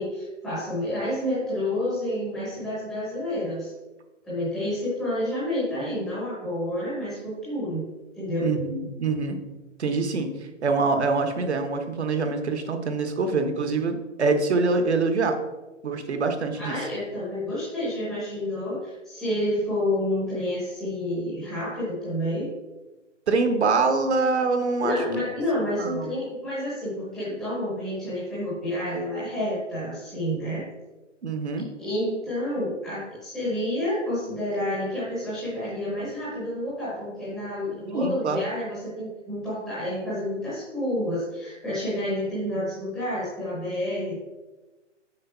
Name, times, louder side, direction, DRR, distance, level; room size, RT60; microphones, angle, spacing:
voice 1, 0.0-3.7 4.2-7.9 8.1-8.5 16.5-22.5 24.8-30.7 31.8-44.2, left 1 dB, ahead, -11 dB, 0.8 m, -29 dB
voice 2, 8.4-9.4 9.8-15.4 15.8-16.8 23.3-25.2 25.8-26.1 31.2-31.7 37.9-38.5, right 4 dB, 60° right, 6 dB, 1.2 m, -25 dB
6.6 x 5.0 x 5.5 m, 1.1 s
hypercardioid pair, 175°, 38 cm